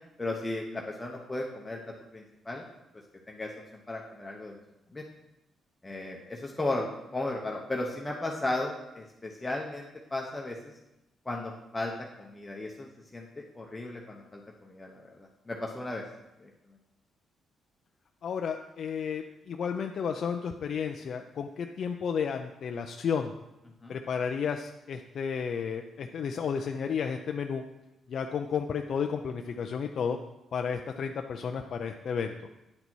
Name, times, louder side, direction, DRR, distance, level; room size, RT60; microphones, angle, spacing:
voice 1, 0.2-1.8 2.1-2.6 3.3-3.5 3.9-4.6 4.9-5.0 5.8-10.6 11.3-11.9 12.2-16.0 16.4-16.5 23.8-24.0, left 2 dB, 20° left, -1 dB, 0.8 m, -35 dB
voice 2, 18.2-23.3 23.9-27.6 28.1-30.2 30.5-32.3, left 6 dB, 60° left, 4 dB, 0.4 m, -32 dB
9.6 x 4.1 x 4.5 m, 0.94 s
cardioid pair, 100°, 0 cm